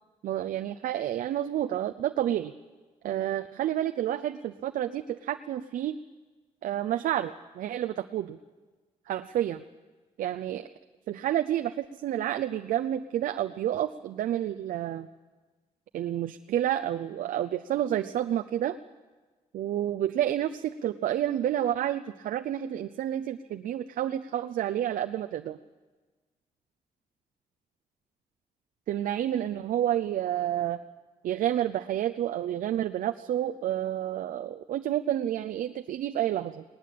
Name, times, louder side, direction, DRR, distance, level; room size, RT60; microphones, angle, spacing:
voice 1, 0.2-2.5 3.0-6.0 6.6-8.4 9.1-9.6 10.2-10.7 11.1-15.1 15.9-18.8 19.5-25.6 28.9-30.8 31.2-36.6, right 11 dB, 85° right, 7 dB, 0.6 m, -29 dB
19.5 x 19.0 x 8.5 m, 1.3 s
cardioid pair, 135°, 14 cm